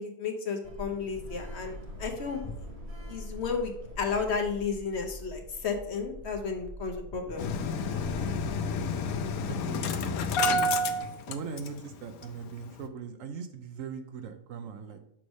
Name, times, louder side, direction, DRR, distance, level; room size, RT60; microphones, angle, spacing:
voice 1, 0.0-2.6 3.1-7.4, left 5 dB, 55° left, 3 dB, 1.0 m, -33 dB
Sliding door, 0.6-10.2, equal, 35° right, 1.4 m, -44 dB
Engine starting, 7.4-11.9 12.2-12.3 12.6-12.8, left 2 dB, 90° left, 1.1 m, -29 dB
voice 2, 8.1-8.5 9.5-10.7 11.3-15.0, right 6 dB, 70° right, 8 dB, 1.0 m, -40 dB
6.2 x 3.2 x 5.2 m, 0.78 s
omnidirectional pair, 1.5 m